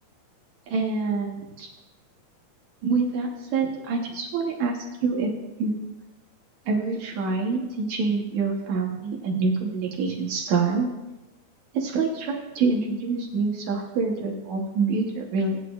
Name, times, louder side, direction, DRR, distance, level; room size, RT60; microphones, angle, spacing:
voice 1, 0.7-1.7 2.8-5.3 5.6-5.8 6.7-10.9 11.7-15.6, right 4 dB, 90° right, 0 dB, 1.6 m, -26 dB
22.0 x 8.0 x 2.4 m, 1.0 s
omnidirectional pair, 4.9 m